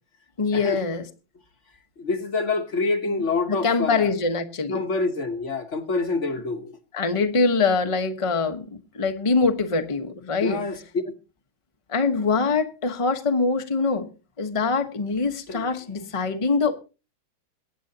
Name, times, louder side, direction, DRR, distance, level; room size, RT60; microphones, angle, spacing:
voice 1, 0.4-1.0 3.0-3.2 3.5-4.8 6.9-8.7 8.9-10.6 11.9-14.1 14.4-16.8, left 4 dB, 25° left, 0.8 m, -23 dB
voice 2, 2.0-4.1 4.7-6.8 10.4-10.8 11.0-11.1 15.5-15.7, left 3 dB, 45° left, 1.2 m, -26 dB
22.5 x 9.6 x 2.8 m
omnidirectional pair, 2.2 m